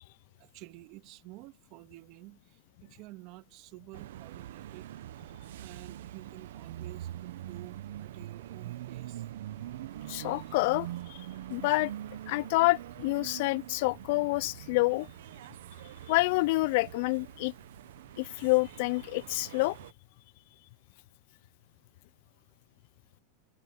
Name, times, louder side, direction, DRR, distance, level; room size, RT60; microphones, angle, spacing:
voice 1, 0.4-4.9 5.6-9.3, right 20 dB, 50° right, 2.1 m, -50 dB
sound 1, 3.9-19.9, right 13 dB, 80° right, 0.9 m, -44 dB
voice 2, 10.1-11.2 11.5-11.9 12.3-15.1 16.1-17.5 18.2-19.8, left 23 dB, 60° left, 0.3 m, -28 dB
supercardioid pair, 135°, 0 cm